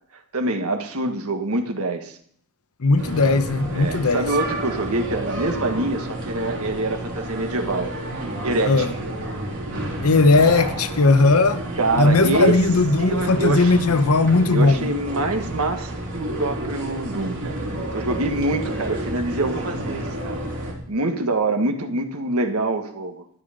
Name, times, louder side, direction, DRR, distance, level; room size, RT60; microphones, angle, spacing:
voice 1, 0.1-2.2 3.7-8.2 8.4-8.9 11.8-12.6 13.0-13.8 14.5-17.6 17.9-23.2, right 2 dB, 90° right, 1.6 m, -25 dB
voice 2, 2.8-4.3 8.6-8.9 10.0-11.6 12.0-14.9, left 3 dB, 85° left, 0.9 m, -17 dB
sound 1, 3.0-20.7, right 1 dB, 60° right, 3.5 m, -30 dB
12.5 x 9.8 x 5.1 m
head